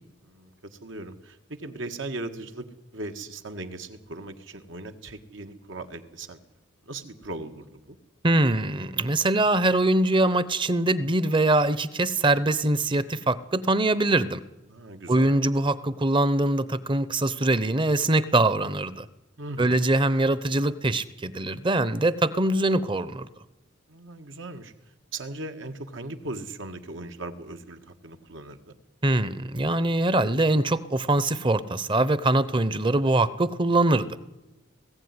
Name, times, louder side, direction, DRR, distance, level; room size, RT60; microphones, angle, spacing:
voice 1, 0.2-2.7 2.9-6.4 6.8-8.0 14.7-15.4 19.4-19.8 23.9-24.7 25.1-28.8, right 2 dB, 80° right, 6 dB, 1.7 m, -38 dB
voice 2, 8.2-14.4 15.1-19.1 19.6-23.3 29.0-34.2, right 2 dB, 25° right, 16 dB, 0.8 m, -23 dB
20.0 x 15.5 x 9.7 m, 1.0 s
head